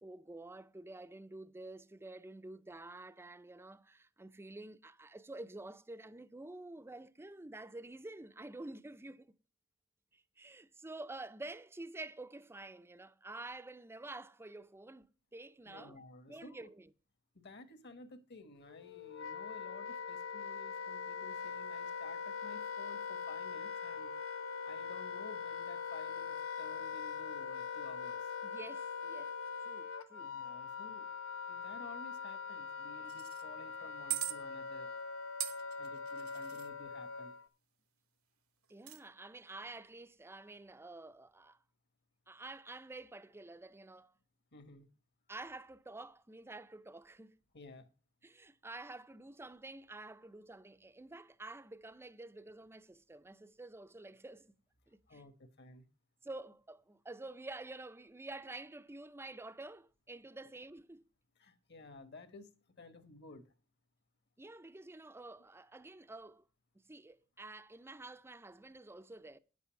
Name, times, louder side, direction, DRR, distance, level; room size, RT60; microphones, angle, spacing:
voice 1, 0.0-9.3 10.1-16.0 16.3-16.9 28.4-29.3 29.6-30.3 38.7-41.6 42.3-44.1 45.3-47.3 48.2-54.5 54.9-55.2 56.2-61.1 64.4-66.4 66.9-69.4, right 2 dB, 10° right, 0.5 m, -49 dB
voice 2, 15.6-16.7 17.3-24.1 24.6-28.3 30.2-31.1 31.5-34.9 35.8-37.3 44.5-44.9 47.5-47.9 55.1-55.9 61.4-63.5, left 2 dB, 55° left, 1.4 m, -54 dB
Wind instrument woodwind instrument, 18.6-37.5, left 6 dB, 75° left, 1.0 m, -42 dB
sound 1, 33.1-33.4 34.1-34.3 35.4-36.7 38.7-39.0, right 14 dB, 80° right, 1.1 m, -40 dB
9.5 x 8.3 x 5.7 m
head